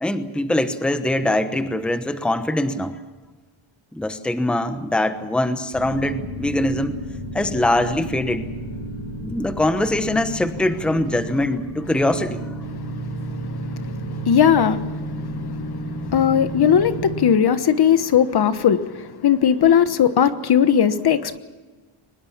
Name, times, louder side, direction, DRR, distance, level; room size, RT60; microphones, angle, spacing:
voice 1, 0.0-3.0 3.9-7.0 7.3-8.5 9.2-12.4, left 1 dB, ahead, 9 dB, 1.0 m, -22 dB
sound 1, 5.7-17.2, right 1 dB, 70° left, 5.6 m, -32 dB
voice 2, 14.2-14.8 16.0-21.4, left 8 dB, 50° left, 11 dB, 1.3 m, -17 dB
24.0 x 20.5 x 7.3 m, 1.3 s
wide cardioid pair, 165°, 50 cm